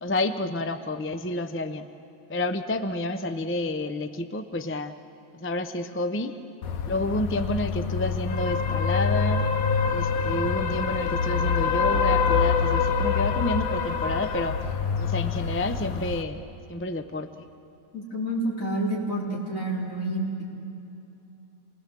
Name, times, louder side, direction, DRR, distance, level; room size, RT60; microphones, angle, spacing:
voice 1, 0.0-1.9 2.3-4.9 5.3-6.4 6.9-9.5 9.9-14.6 15.0-16.4 16.7-17.4, left 2 dB, 15° left, 9 dB, 0.4 m, -29 dB
sound 1, 6.6-16.2, left 6 dB, 85° left, 1.5 m, -25 dB
voice 2, 17.9-20.4, right 1 dB, 65° left, -3 dB, 4.2 m, -29 dB
28.0 x 20.0 x 7.5 m, 2.9 s
omnidirectional pair, 1.5 m